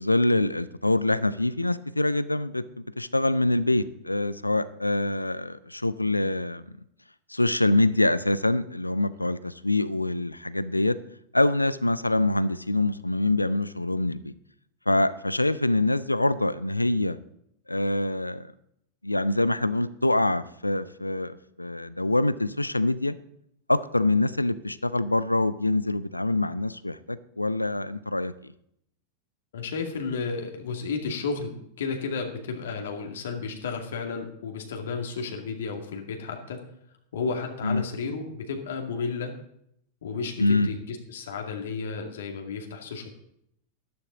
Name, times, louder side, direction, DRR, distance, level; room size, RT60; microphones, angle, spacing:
voice 1, 0.0-6.6 7.3-11.0 11.3-14.3 14.9-17.2 17.7-18.5 19.0-23.2 23.7-28.5 37.6-37.8 40.4-40.7, left 2 dB, 85° left, 16 dB, 0.6 m, -25 dB
voice 2, 29.5-36.6 37.1-39.3 40.0-43.1, left 5 dB, 60° left, 3 dB, 2.2 m, -32 dB
13.0 x 13.0 x 3.9 m, 0.72 s
figure-of-eight pair, 90°, 0 cm